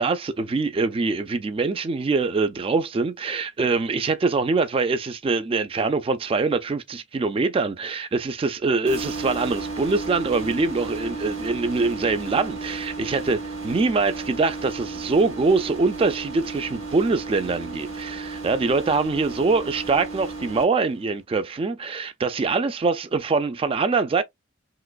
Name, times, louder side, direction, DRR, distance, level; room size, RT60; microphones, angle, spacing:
voice 1, 0.0-24.2, right 3 dB, 25° right, 0.3 m, -24 dB
sound 1, 8.9-20.6, right 3 dB, 90° right, 1.5 m, -34 dB
3.2 x 2.9 x 2.3 m
head